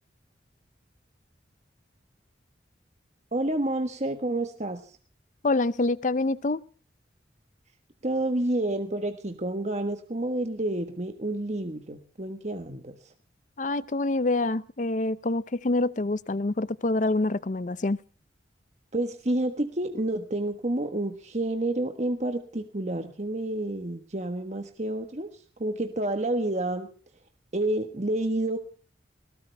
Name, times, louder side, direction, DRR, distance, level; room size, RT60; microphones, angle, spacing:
voice 1, 3.3-4.9 8.0-13.1 18.9-26.9 27.5-28.6, right 1 dB, 40° right, 6 dB, 1.4 m, -29 dB
voice 2, 5.4-6.6 13.6-18.0, left 2 dB, 45° left, 17 dB, 0.6 m, -26 dB
20.0 x 17.5 x 3.4 m, 0.40 s
head